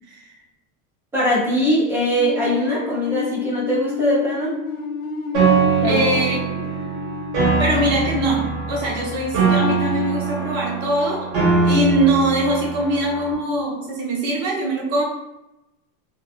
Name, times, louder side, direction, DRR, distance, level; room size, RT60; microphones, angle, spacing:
voice 1, 1.1-4.5 5.8-6.0, equal, 5° right, -7 dB, 0.3 m, -21 dB
sound 1, 2.2-9.0, left 6 dB, 50° left, 0.5 m, -30 dB
Piano, 5.3-13.3, right 5 dB, 75° right, 1.3 m, -22 dB
voice 2, 5.8-6.7 7.6-11.3 11.6-15.1, right 1 dB, 55° right, -3 dB, 1.0 m, -22 dB
2.5 x 2.3 x 2.5 m, 0.94 s
supercardioid pair, 155°, 40 cm